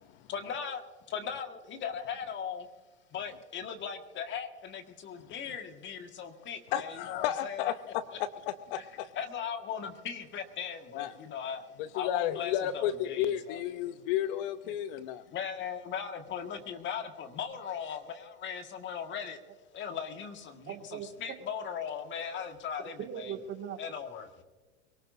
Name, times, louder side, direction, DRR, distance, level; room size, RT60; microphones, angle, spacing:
voice 1, 0.3-2.7 3.1-7.7 8.1-8.2 8.8-8.9 9.1-11.7 11.9-13.6 15.3-19.4 19.7-23.3 23.8-24.4, left 7 dB, 30° left, 1.8 m, -38 dB
voice 2, 6.7-9.1 10.9-11.1 11.8-15.2, left 11 dB, 50° left, 0.7 m, -32 dB
voice 3, 20.7-21.4 23.0-23.8, right 8 dB, 35° right, 2.2 m, -39 dB
23.0 x 18.0 x 2.7 m
hypercardioid pair, 110°, 37 cm